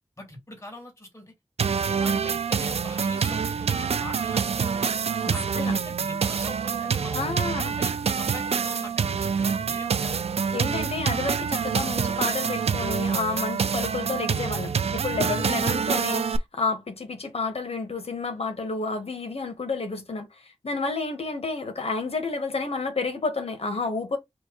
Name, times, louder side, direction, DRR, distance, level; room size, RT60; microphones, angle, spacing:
voice 1, 0.2-1.3 1.7-4.9 5.3-7.3 7.7-10.2 15.2-15.5, left 1 dB, 30° left, 2.4 m, -41 dB
sound 1, 1.6-16.4, right 6 dB, 85° right, 0.4 m, -26 dB
voice 2, 5.2-5.8 7.1-7.8 10.5-20.3 20.6-24.2, left 3 dB, 80° left, 1.2 m, -30 dB
4.5 x 2.7 x 3.7 m
wide cardioid pair, 70°, 10 cm